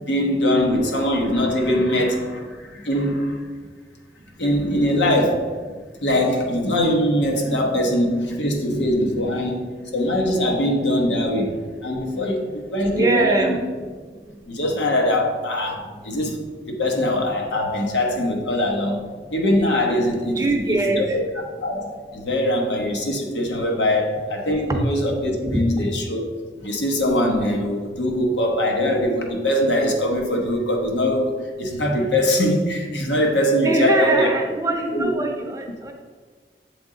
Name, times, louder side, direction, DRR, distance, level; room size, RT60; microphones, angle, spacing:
voice 1, 0.1-3.4 4.4-5.5 6.0-9.6 9.9-11.6 11.8-13.6 14.5-16.4 16.7-21.3 21.6-26.2 26.6-34.3 34.9-35.1, left 1 dB, 80° left, 1 dB, 1.0 m, -22 dB
voice 2, 12.9-13.6 20.3-21.2 24.7-24.8 25.4-25.6 33.6-35.9, right 2 dB, 20° right, 2 dB, 0.6 m, -22 dB
7.5 x 3.5 x 3.7 m, 1.5 s
head